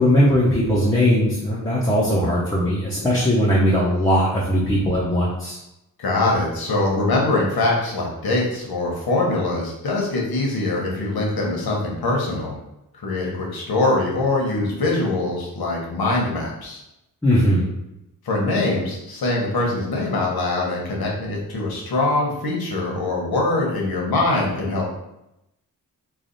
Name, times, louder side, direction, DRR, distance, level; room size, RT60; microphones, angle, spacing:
voice 1, 0.0-5.6 17.2-17.7, equal, 10° left, -7 dB, 0.6 m, -19 dB
voice 2, 6.0-12.6 13.0-16.8 18.2-24.9, left 2 dB, 80° left, -2 dB, 1.1 m, -23 dB
3.3 x 2.3 x 3.9 m, 0.87 s
wide cardioid pair, 150°, 36 cm